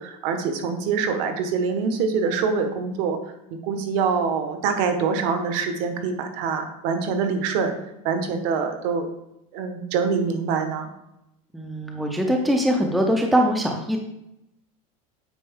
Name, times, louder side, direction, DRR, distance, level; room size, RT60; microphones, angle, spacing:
voice 1, 0.0-3.2 3.5-7.7 8.0-9.1 9.5-10.9, right 5 dB, 55° right, 7 dB, 1.2 m, -25 dB
voice 2, 11.5-14.0, equal, ahead, 2 dB, 0.5 m, -22 dB
8.6 x 5.2 x 3.6 m, 0.86 s
supercardioid pair, 165°, 19 cm